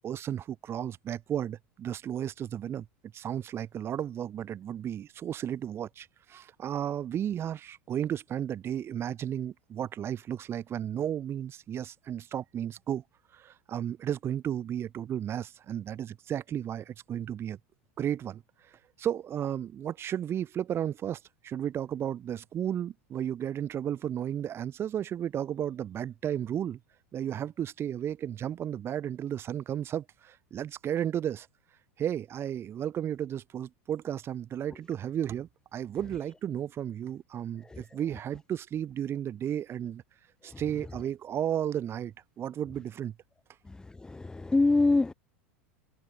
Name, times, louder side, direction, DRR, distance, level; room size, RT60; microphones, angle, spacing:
voice 1, 0.0-2.9 3.1-13.0 13.3-17.6 18.0-18.4 18.7-26.8 27.1-31.5 32.0-40.0 40.4-43.1, right 10 dB, 35° right, 3.2 m, -33 dB
voice 2, 37.6-38.0 40.4-40.6 43.6-45.1, left 3 dB, 10° left, 1.7 m, -26 dB
hypercardioid pair, 100°, 7 cm